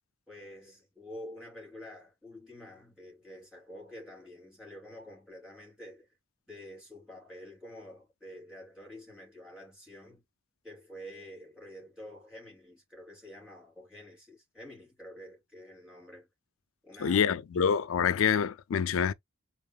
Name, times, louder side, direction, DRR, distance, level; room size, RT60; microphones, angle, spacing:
voice 1, 0.3-6.1 6.5-10.3 10.6-16.3 16.8-17.3, left 1 dB, 5° right, 3.5 m, -48 dB
voice 2, 17.0-19.1, left 7 dB, 80° left, 0.4 m, -26 dB
4.6 x 3.0 x 3.3 m
head